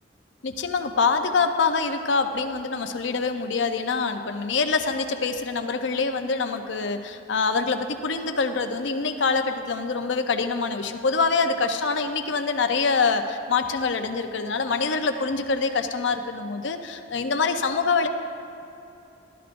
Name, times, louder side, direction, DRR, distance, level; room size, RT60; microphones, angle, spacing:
voice 1, 0.4-18.1, left 4 dB, 75° left, 6 dB, 0.6 m, -25 dB
13.5 x 11.5 x 2.6 m, 2.8 s
head